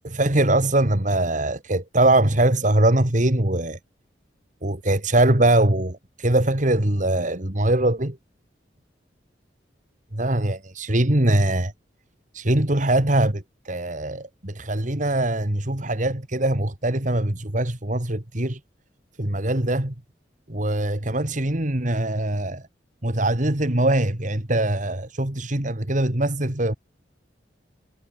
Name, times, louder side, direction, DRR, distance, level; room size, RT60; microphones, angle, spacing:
voice 1, 0.0-3.8 4.6-8.2 10.1-11.7 12.3-18.6 19.2-19.9 20.5-22.6 23.0-26.8, right 1 dB, 45° right, 2.4 m, -22 dB
head